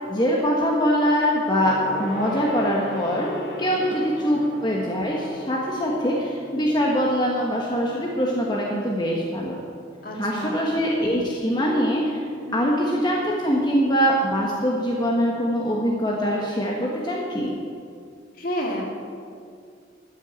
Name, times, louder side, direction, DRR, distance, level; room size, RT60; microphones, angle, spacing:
voice 1, 0.0-9.6 10.1-17.5, equal, 20° left, -3 dB, 1.2 m, -23 dB
Gong, 1.6-11.3 11.6-11.9 12.2-12.3, left 2 dB, 65° left, 2.0 m, -39 dB
voice 2, 10.0-10.7 12.5-12.7 18.4-18.8, equal, 45° left, -1 dB, 2.1 m, -31 dB
13.0 x 6.4 x 8.6 m, 2.3 s
head